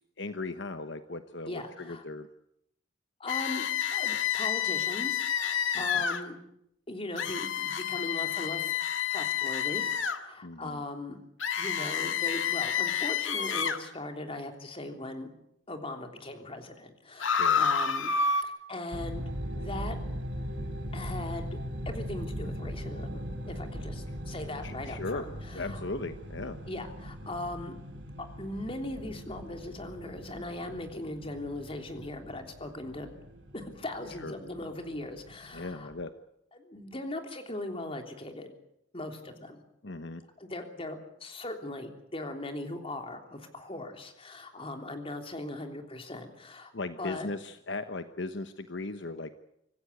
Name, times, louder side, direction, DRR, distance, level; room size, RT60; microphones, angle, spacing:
voice 1, 0.2-2.3 5.7-6.0 10.4-10.8 17.3-17.6 24.6-25.3 25.5-26.6 34.2-34.3 35.5-36.1 39.8-40.2 46.7-49.4, left 3 dB, 65° left, 9 dB, 1.1 m, -37 dB
voice 2, 1.4-2.0 3.2-6.4 6.9-8.7 9.1-9.9 10.2-11.2 11.6-15.3 15.7-18.1 18.4-19.2 19.6-20.0 20.9-21.6 21.8-23.2 23.5-25.8 26.7-27.8 28.2-33.1 33.5-35.9 36.5-38.5 38.9-39.6 40.4-46.7 47.0-47.3, left 2 dB, 30° left, 5 dB, 3.3 m, -39 dB
sound 1, 3.3-6.2 7.2-10.2 11.4-13.8 17.2-18.4, left 7 dB, 85° left, 1.8 m, -29 dB
sound 2, 18.9-36.0, equal, 75° right, 4.7 m, -40 dB
26.0 x 15.0 x 9.5 m, 0.78 s
head